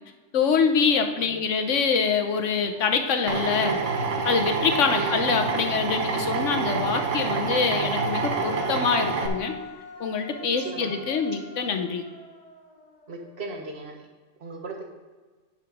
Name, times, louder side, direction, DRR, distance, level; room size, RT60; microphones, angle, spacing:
voice 1, 0.3-3.8 4.2-9.6 10.0-12.0, left 5 dB, 75° left, 6 dB, 1.2 m, -25 dB
Human voice, 0.9-1.0 1.3-5.0 6.7-13.9, left 2 dB, 35° left, 1.3 m, -45 dB
Drill, 3.3-9.3, right 4 dB, 75° right, 1.2 m, -27 dB
voice 2, 10.6-10.9 13.1-14.0 14.4-14.8, right 3 dB, 55° right, 1 dB, 1.5 m, -36 dB
9.7 x 5.0 x 5.2 m, 1.4 s
omnidirectional pair, 1.3 m